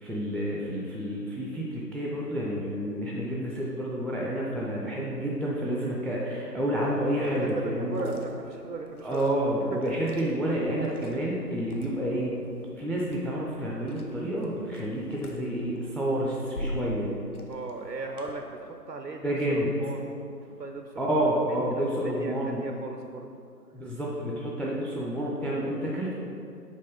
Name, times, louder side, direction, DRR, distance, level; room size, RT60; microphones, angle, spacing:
voice 1, 0.0-8.0 9.0-12.4 12.8-17.1 19.2-19.7 21.0-22.6 23.7-26.1, right 1 dB, 5° left, -4 dB, 0.4 m, -29 dB
Liquid, 7.2-18.3, equal, 65° left, 0.8 m, -43 dB
voice 2, 7.2-9.3 9.7-10.2 17.5-21.1 21.5-23.3, right 3 dB, 80° right, 3 dB, 0.6 m, -38 dB
5.2 x 3.8 x 5.2 m, 2.5 s
figure-of-eight pair, 175°, 49 cm